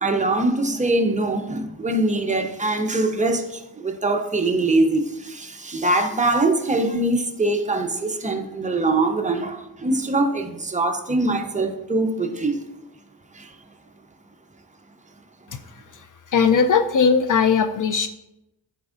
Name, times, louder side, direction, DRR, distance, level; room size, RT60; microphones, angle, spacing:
voice 1, 0.0-12.6 13.3-13.5, right 2 dB, 15° right, 0.8 m, -23 dB
voice 2, 16.3-18.1, left 6 dB, 45° left, 0.5 m, -18 dB
11.0 x 4.4 x 2.5 m
cardioid pair, 75°, 45 cm